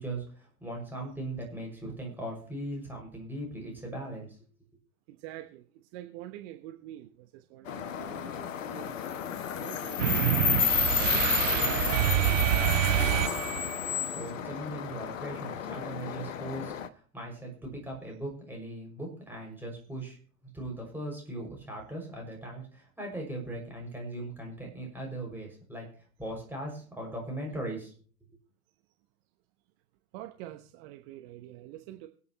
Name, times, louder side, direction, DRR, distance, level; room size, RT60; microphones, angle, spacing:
voice 1, 0.0-4.4 14.1-20.2 20.5-25.9 26.2-27.9, right 1 dB, 5° right, 6.4 m, -39 dB
voice 2, 5.1-9.1 9.4-10.5 10.8-13.1 30.1-32.1, right 14 dB, 45° right, 1.1 m, -46 dB
sound 1, 7.7-16.9, left 9 dB, 60° left, 1.1 m, -31 dB
sound 2, 10.0-13.8, right 14 dB, 60° right, 0.5 m, -27 dB
24.0 x 8.7 x 3.1 m
figure-of-eight pair, 85°, 43 cm